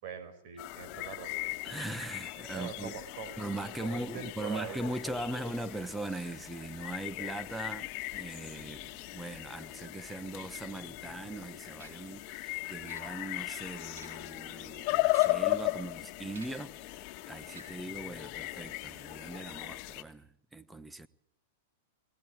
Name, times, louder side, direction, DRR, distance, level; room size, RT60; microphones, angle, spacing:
voice 1, 0.0-1.5 2.5-3.3 3.8-4.8, right 7 dB, 55° right, 5.3 m, -43 dB
sound 1, 0.6-20.0, left 19 dB, 45° left, 1.6 m, -37 dB
voice 2, 1.6-3.0 3.4-21.1, right 2 dB, 5° right, 1.0 m, -40 dB
sound 2, 11.8-12.1 12.9-13.5 13.8-14.4 15.1-15.6 16.3-16.7 17.5-18.0, right 3 dB, 85° right, 4.7 m, -54 dB
20.5 x 19.0 x 9.0 m
hypercardioid pair, 130°, 0 cm